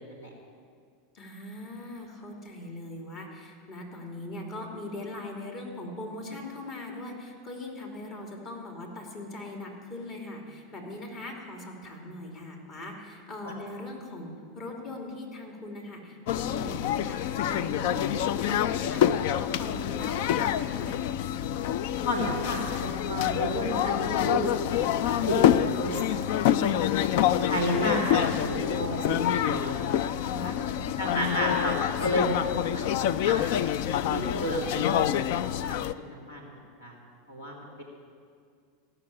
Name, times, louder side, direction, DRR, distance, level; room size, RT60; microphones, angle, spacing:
voice 1, 1.1-21.0 30.2-31.3, left 2 dB, 45° left, 0 dB, 2.9 m, -40 dB
sound 1, 16.3-35.9, left 10 dB, 65° left, 0.4 m, -27 dB
voice 2, 22.0-26.9 27.4-29.2 29.4-30.5 31.0-33.5 34.1-35.3 35.7-36.5 36.8-37.0 37.3-37.8, equal, 85° left, -1 dB, 2.2 m, -32 dB
15.5 x 6.8 x 8.6 m, 2.2 s
hypercardioid pair, 95°, 0 cm